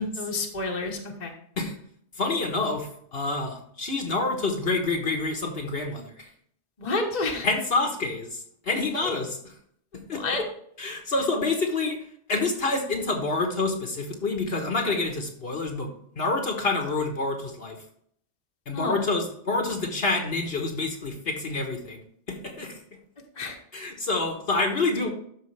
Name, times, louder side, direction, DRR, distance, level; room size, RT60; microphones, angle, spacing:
voice 1, 0.0-1.3 6.8-7.5 9.0-9.1 10.1-10.4 18.7-19.1 23.3-23.6, left 3 dB, 40° left, 2 dB, 1.3 m, -29 dB
voice 2, 2.2-6.3 7.4-9.4 10.1-10.2 10.8-12.0 12.3-15.9 16.2-17.8 18.7-22.0 22.3-22.8 23.7-25.1, left 3 dB, 55° left, 3 dB, 1.4 m, -27 dB
13.0 x 4.9 x 3.3 m, 0.66 s
omnidirectional pair, 1.2 m